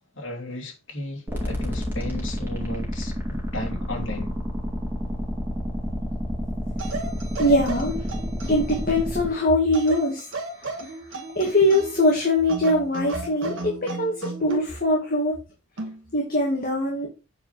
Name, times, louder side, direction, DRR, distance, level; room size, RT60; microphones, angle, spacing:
voice 1, 0.1-4.3, left 1 dB, 70° left, 2.7 m, -35 dB
sound 1, 1.3-9.3, equal, 10° right, 2.5 m, -29 dB
sound 2, 6.8-9.0 9.7-12.1 12.5-14.7 15.8-16.0, right 2 dB, 70° right, 1.5 m, -34 dB
voice 2, 7.4-8.1 8.5-10.3 10.6-10.9 11.4-15.3 16.1-17.1, left 1 dB, 45° left, 2.1 m, -22 dB
8.2 x 4.9 x 4.7 m
head